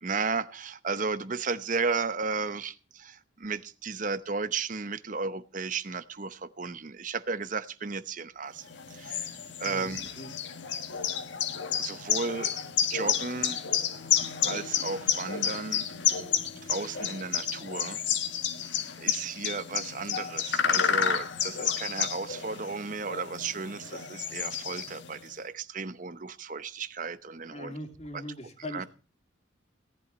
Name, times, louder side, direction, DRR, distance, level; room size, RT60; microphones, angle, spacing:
voice 1, 0.0-10.1 11.8-12.5 12.9-13.6 14.4-15.9 16.6-18.0 19.0-27.7 28.1-28.2 28.7-28.9, right 4 dB, 40° right, 13 dB, 0.8 m, -34 dB
sound 1, 8.7-25.2, left 8 dB, 65° left, 1.5 m, -31 dB
voice 2, 9.6-10.3 27.5-28.9, left 1 dB, 35° left, 4 dB, 2.7 m, -40 dB
18.0 x 11.5 x 4.3 m, 0.37 s
head